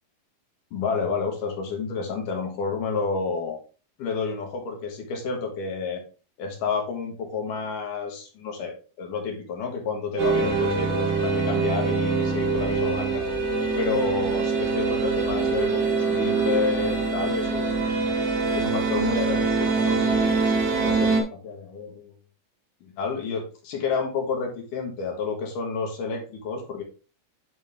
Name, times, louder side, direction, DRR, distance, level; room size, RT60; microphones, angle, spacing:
voice 1, 0.7-3.6 4.0-6.0 6.4-13.2 13.8-18.0 18.5-21.1 21.4-22.1 22.8-26.8, left 4 dB, 65° left, 1 dB, 2.7 m, -30 dB
sound 1, 10.2-21.2, right 4 dB, 85° right, 1.1 m, -24 dB
9.3 x 3.6 x 3.5 m, 0.35 s
omnidirectional pair, 4.5 m